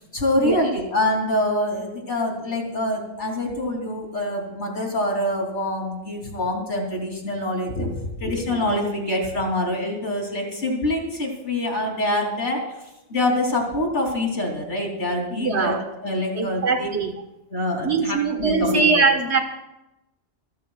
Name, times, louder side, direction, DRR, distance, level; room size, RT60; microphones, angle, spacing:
voice 1, 0.1-7.9 8.2-12.6 13.1-16.9 17.5-19.1, left 1 dB, 70° left, 0 dB, 3.4 m, -25 dB
voice 2, 15.3-15.8 16.4-17.1 17.8-19.4, right 4 dB, 70° right, 5 dB, 1.7 m, -21 dB
27.5 x 13.0 x 2.4 m, 0.91 s
omnidirectional pair, 1.2 m